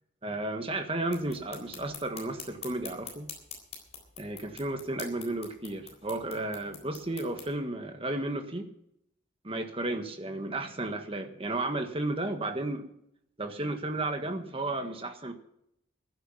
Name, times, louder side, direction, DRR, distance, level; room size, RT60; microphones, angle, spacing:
voice 1, 0.2-3.3 4.2-8.7 9.4-12.9 13.4-15.3, right 2 dB, 25° right, 6 dB, 1.5 m, -33 dB
sound 1, 1.1-7.5, left 6 dB, 30° left, 3.8 m, -46 dB
15.0 x 11.5 x 5.7 m, 0.77 s
head